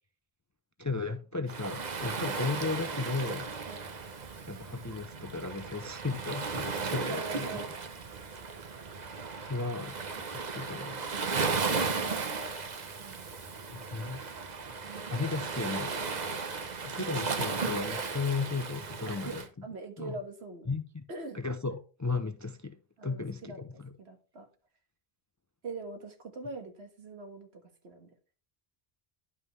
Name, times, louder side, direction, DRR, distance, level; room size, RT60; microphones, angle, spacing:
voice 1, 0.8-3.5 4.5-7.5 9.5-10.0 10.3-11.0 13.7-14.3 15.1-15.9 16.7-19.7 20.0-20.2 20.7-21.0 21.3-23.9, left 3 dB, 30° left, 0.3 m, -35 dB
Waves surf, 1.5-19.5, right 4 dB, 45° right, 0.9 m, -35 dB
voice 2, 6.7-7.7 11.9-12.4 12.9-13.3 14.8-15.5 19.1-20.7 21.1-21.4 23.0-23.6 24.0-24.5 25.6-28.1, right 3 dB, 85° right, 1.8 m, -43 dB
11.0 x 5.6 x 3.1 m
omnidirectional pair, 1.1 m